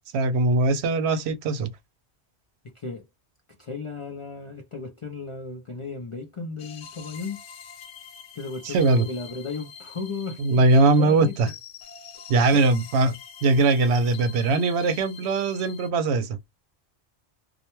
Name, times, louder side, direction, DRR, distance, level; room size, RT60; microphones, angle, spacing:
voice 1, 0.1-1.7 8.6-9.1 10.4-11.5 12.3-13.2 13.4-16.4, right 3 dB, 75° right, 0.8 m, -21 dB
voice 2, 2.7-3.1 3.6-7.4 8.3-10.6 10.9-11.4 12.5-12.7, left 4 dB, 45° left, 0.4 m, -35 dB
sound 1, 6.6-15.9, left 7 dB, 75° left, 0.9 m, -45 dB
2.3 x 2.1 x 2.9 m
omnidirectional pair, 1.1 m